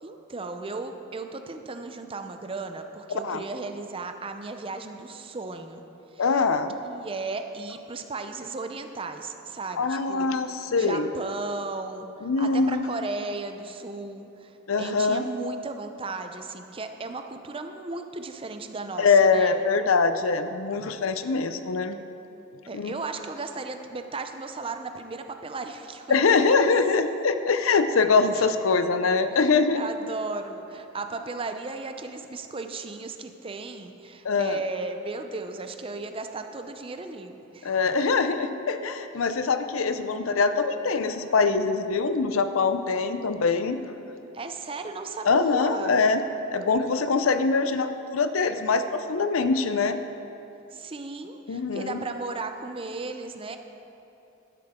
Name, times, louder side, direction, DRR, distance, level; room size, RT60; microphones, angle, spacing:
voice 1, 0.0-5.8 6.1-6.2 6.9-19.6 22.7-26.2 28.3-28.5 29.3-29.5 29.7-37.8 44.3-46.0 50.7-53.6, right 3 dB, 25° right, 7 dB, 0.6 m, -35 dB
voice 2, 3.1-3.4 6.2-6.7 9.8-11.1 12.2-12.9 14.7-15.2 19.0-22.0 22.7-22.9 26.1-29.8 34.2-34.6 37.6-43.8 45.2-46.2 46.5-50.0 51.5-52.0, left 4 dB, 85° left, 10 dB, 0.6 m, -23 dB
12.5 x 10.5 x 3.7 m, 2.9 s
head